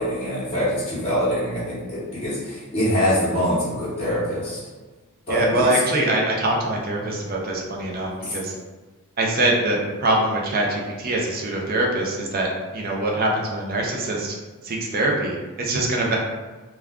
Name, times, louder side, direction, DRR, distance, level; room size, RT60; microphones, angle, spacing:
voice 1, 0.0-4.6 5.3-5.7, equal, 30° left, -12 dB, 0.8 m, -24 dB
voice 2, 5.3-8.6 9.2-14.4 14.6-16.2, right 1 dB, 40° right, -1 dB, 0.5 m, -23 dB
2.3 x 2.2 x 3.4 m, 1.3 s
head